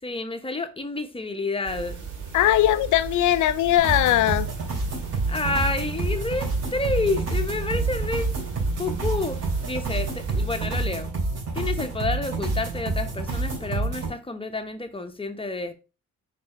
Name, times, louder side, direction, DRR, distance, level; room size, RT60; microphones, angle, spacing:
voice 1, 0.0-2.0 5.3-11.1 11.5-15.7, left 3 dB, 20° left, 0.9 m, -29 dB
sound 1, 1.6-10.7, right 6 dB, 85° right, 2.2 m, -35 dB
voice 2, 2.3-4.5, left 13 dB, 75° left, 0.6 m, -20 dB
sound 2, 3.8-14.1, right 3 dB, 55° right, 3.3 m, -28 dB
5.2 x 4.3 x 4.5 m
cardioid pair, 90°, 30 cm